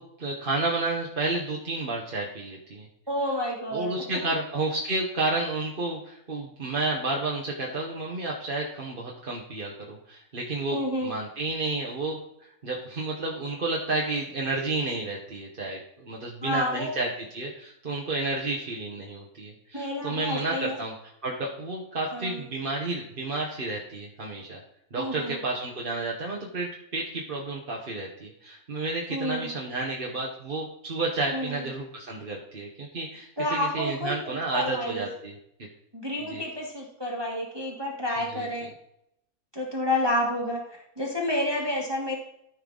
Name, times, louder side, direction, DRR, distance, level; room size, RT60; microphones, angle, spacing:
voice 1, 0.0-2.9 3.7-12.2 12.6-17.1 17.3-20.9 21.2-24.6 24.9-35.3 36.3-36.4 38.3-38.5, right 2 dB, 40° right, -2 dB, 1.4 m, -31 dB
voice 2, 3.1-3.9 4.3-4.4 10.7-11.1 16.4-16.9 19.7-20.8 22.1-22.4 25.0-25.4 29.1-29.5 31.3-31.7 33.4-35.1 35.9-38.7 39.5-42.2, left 1 dB, 15° right, -2 dB, 1.7 m, -30 dB
13.5 x 5.6 x 3.9 m, 0.76 s
omnidirectional pair, 1.5 m